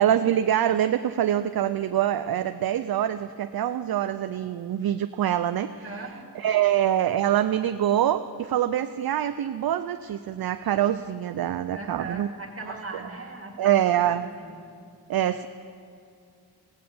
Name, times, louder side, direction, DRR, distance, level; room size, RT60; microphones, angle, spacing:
voice 1, 0.0-6.0 6.4-12.3 12.7-12.8 13.6-14.3 15.1-15.5, right 11 dB, 65° right, 10 dB, 0.5 m, -25 dB
voice 2, 5.7-6.2 11.7-14.6, right 3 dB, 35° right, 1 dB, 2.1 m, -39 dB
17.0 x 8.7 x 6.9 m, 2.4 s
wide cardioid pair, 70°, 40 cm